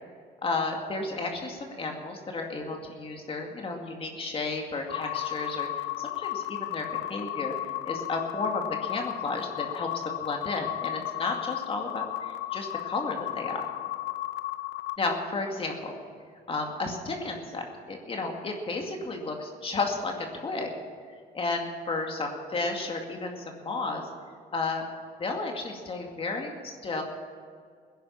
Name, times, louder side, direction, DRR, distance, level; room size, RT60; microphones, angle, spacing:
voice 1, 0.4-7.5 7.9-13.7 15.0-15.9 16.5-20.7 21.3-24.1 24.5-24.8 25.2-27.0, left 3 dB, 35° left, 2 dB, 2.3 m, -33 dB
sound 1, 4.9-15.0, left 15 dB, 85° left, 0.7 m, -34 dB
17.0 x 10.5 x 7.1 m, 2.1 s
cardioid pair, 110°, 17 cm